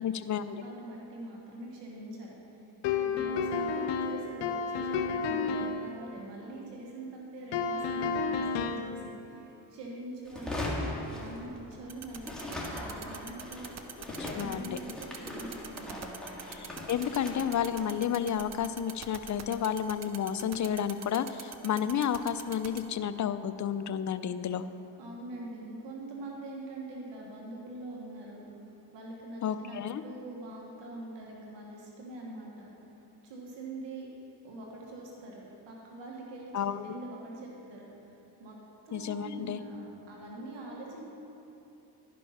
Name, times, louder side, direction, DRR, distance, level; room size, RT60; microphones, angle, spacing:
voice 1, 0.0-0.6 14.2-14.8 16.6-24.6 29.4-30.0 36.5-36.9 38.9-39.6, left 8 dB, 45° left, 12 dB, 0.5 m, -31 dB
voice 2, 0.6-2.7 3.0-13.7 14.3-16.2 25.0-28.6 28.9-32.7 33.2-34.1 34.4-38.6 38.8-41.1, right 2 dB, 90° right, -3 dB, 1.5 m, -44 dB
sound 1, 2.8-5.8 7.5-9.0, left 5 dB, 85° left, 0.7 m, -31 dB
sound 2, 10.2-11.9 12.2-19.4, left 1 dB, ahead, 2.0 m, -40 dB
sound 3, 11.9-22.8, right 7 dB, 40° right, 0.7 m, -42 dB
12.0 x 5.3 x 5.6 m, 3.0 s
cardioid pair, 65°, 42 cm